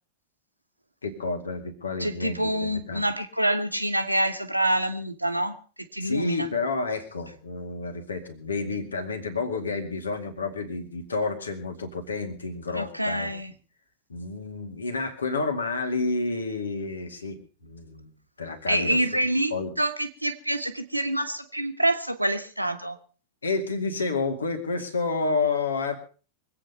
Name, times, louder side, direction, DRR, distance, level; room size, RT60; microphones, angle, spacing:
voice 1, 1.0-2.5 2.9-3.1 6.0-13.3 14.1-18.1 18.4-19.0 19.5-19.7 23.4-26.0, left 3 dB, 75° left, 6 dB, 2.2 m, -30 dB
voice 2, 2.0-5.5 5.9-6.5 12.7-13.5 18.7-23.0, right 1 dB, 85° right, 8 dB, 1.4 m, -26 dB
23.5 x 8.9 x 5.5 m, 0.38 s
figure-of-eight pair, 90°, 0 cm